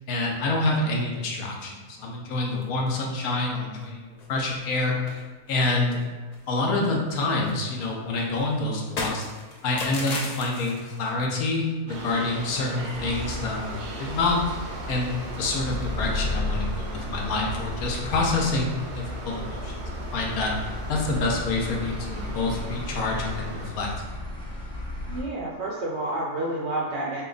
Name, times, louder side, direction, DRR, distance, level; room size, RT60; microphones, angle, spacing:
voice 1, 0.1-5.2 5.5-6.0 6.5-9.3 9.6-19.7 20.1-23.9, left 2 dB, 70° left, 0 dB, 1.1 m, -27 dB
sound 1, 2.4-3.0 3.3-3.4 3.8-3.9 4.2-4.8 5.1-6.5 6.7-11.1, left 2 dB, 85° left, 0.3 m, -37 dB
sound 2, 11.9-23.7, right 2 dB, 90° right, 1.2 m, -39 dB
sound 3, 12.9-25.2, left 1 dB, 5° left, 0.7 m, -34 dB
voice 2, 25.1-27.2, right 1 dB, 60° right, -4 dB, 0.7 m, -29 dB
4.3 x 2.2 x 3.9 m, 1.3 s
omnidirectional pair, 1.6 m